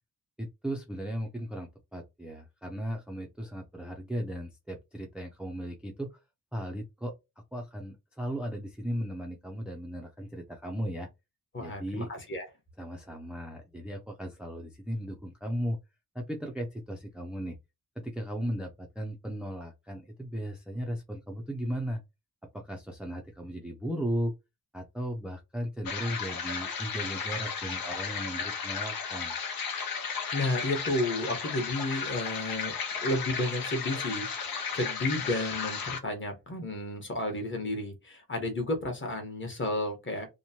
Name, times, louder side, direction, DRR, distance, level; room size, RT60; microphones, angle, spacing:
voice 1, 0.4-6.2 6.5-7.1 7.5-11.1 11.6-12.1 12.8-15.8 16.1-17.6 18.0-22.0 22.5-24.3 24.7-29.4, equal, 5° right, 0.4 m, -36 dB
voice 2, 11.5-12.4 30.3-32.7 33.0-34.3 34.7-40.3, left 1 dB, 35° left, 1.0 m, -32 dB
sound 1, 25.9-36.0, left 6 dB, 80° left, 0.8 m, -34 dB
2.9 x 2.1 x 2.7 m
wide cardioid pair, 140°, 35 cm